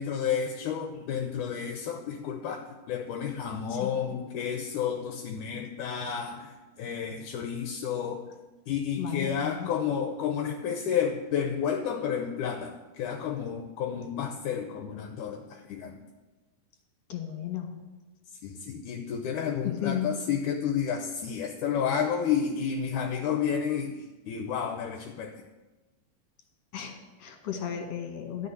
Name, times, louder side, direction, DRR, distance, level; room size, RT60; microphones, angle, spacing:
voice 1, 0.0-8.3 8.7-16.0 18.4-25.4, left 7 dB, 75° left, 4 dB, 2.3 m, -31 dB
voice 2, 9.0-9.7 17.1-17.8 19.6-20.2 26.7-28.5, left 9 dB, 60° left, 3 dB, 2.8 m, -34 dB
12.5 x 6.4 x 9.5 m, 1.2 s
omnidirectional pair, 3.7 m